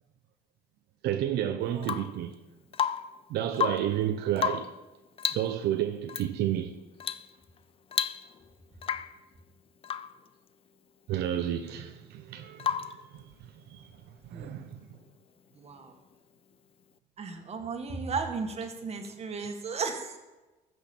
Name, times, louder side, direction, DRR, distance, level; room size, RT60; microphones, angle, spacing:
voice 1, 1.0-2.4 3.3-4.7 5.3-6.8 11.1-13.9 14.2-15.0 19.0-19.1 19.4-19.5, right 11 dB, 80° right, 0.8 m, -31 dB
Rain / Water tap faucet / Drip, 1.8-2.2 2.7-3.2 3.5-4.0 4.4-4.8 5.2-5.5 6.1-6.3 7.0-7.3 7.6-7.7 7.9-8.5 8.8-9.2 9.8-10.2 12.6-13.0 14.9-15.0, left 8 dB, 35° left, 0.5 m, -32 dB
voice 2, 17.2-20.2, right 4 dB, 40° right, 1.8 m, -34 dB
14.5 x 6.4 x 6.9 m
cardioid pair, 110°, 17 cm